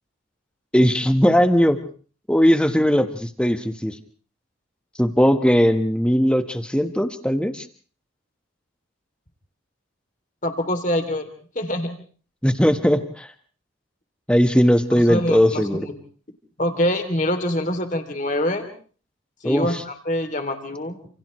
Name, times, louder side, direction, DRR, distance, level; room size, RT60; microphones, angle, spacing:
voice 1, 0.7-1.8 2.3-4.0 5.0-7.6 12.4-13.3 14.3-15.9 19.4-19.8, equal, 5° left, 8 dB, 1.4 m, -19 dB
voice 2, 10.4-11.3 11.5-11.9 15.1-15.9 16.6-18.7 19.4-19.7 20.1-21.0, left 1 dB, 35° left, 6 dB, 2.9 m, -24 dB
30.0 x 28.0 x 3.2 m, 0.43 s
head